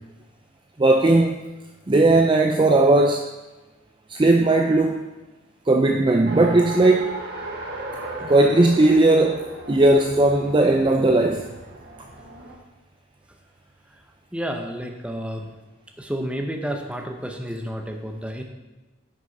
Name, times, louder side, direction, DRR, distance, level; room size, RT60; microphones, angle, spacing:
voice 1, 0.8-1.4 1.9-3.3 4.1-5.0 5.7-7.1 8.2-11.5, right 2 dB, 25° right, 4 dB, 0.4 m, -17 dB
Race car auto racing, 6.3-12.6, right 2 dB, 50° right, 1.4 m, -36 dB
voice 2, 14.3-15.5 16.0-18.4, equal, 5° right, 3 dB, 0.9 m, -30 dB
9.7 x 6.2 x 5.3 m, 1.1 s
head